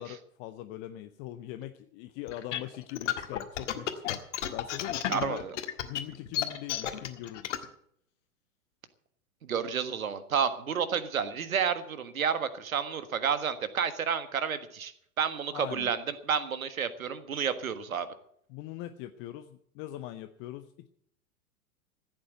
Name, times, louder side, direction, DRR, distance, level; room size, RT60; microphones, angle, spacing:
voice 1, 0.0-5.5 5.8-7.5 15.5-15.9 18.5-20.9, left 14 dB, 25° left, 10 dB, 0.7 m, -42 dB
sound 1, 2.3-7.6, left 11 dB, 55° left, 1.7 m, -32 dB
voice 2, 5.1-5.5 9.4-14.9 15.2-16.0 16.3-18.1, right 7 dB, 65° right, 12 dB, 1.6 m, -30 dB
15.0 x 8.8 x 8.0 m, 0.69 s
figure-of-eight pair, 100°, 44 cm